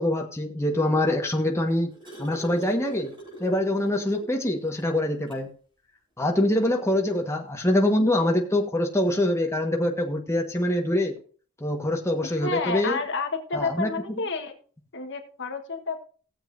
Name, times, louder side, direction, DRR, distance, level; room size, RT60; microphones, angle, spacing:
voice 1, 0.0-1.9 2.2-3.1 3.4-5.5 6.2-11.1 11.6-13.0 13.5-14.2, left 1 dB, 15° left, 1 dB, 1.4 m, -24 dB
sound 1, 1.5-4.4 4.8-4.9 5.3-5.5 6.6-6.7, right 1 dB, 25° right, 5.2 m, -43 dB
voice 2, 12.4-14.5 14.9-16.0, left 3 dB, 60° left, 6 dB, 1.4 m, -30 dB
18.0 x 7.4 x 2.7 m, 0.42 s
head